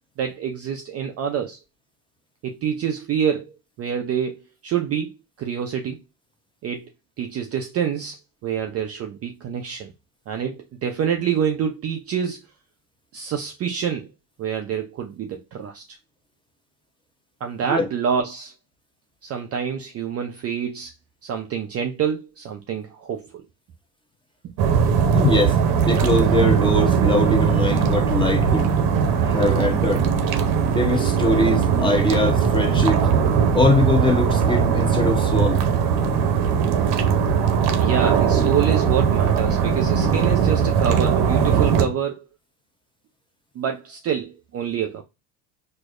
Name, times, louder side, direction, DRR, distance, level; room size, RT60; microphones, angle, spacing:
voice 1, 0.2-1.6 2.4-4.3 4.6-6.0 6.6-6.9 7.2-9.9 10.3-12.4 13.1-14.1 14.4-16.0 17.4-18.5 19.2-20.9 21.2-23.4 37.8-42.3 43.6-45.0, right 8 dB, 30° right, 0.4 m, -27 dB
sound 1, 24.6-41.9, right 7 dB, 50° right, 0.8 m, -20 dB
voice 2, 25.1-28.7 29.2-30.0 30.7-33.1 33.5-35.6, left 2 dB, 10° left, 0.8 m, -22 dB
4.7 x 2.0 x 2.4 m
hypercardioid pair, 75°, 48 cm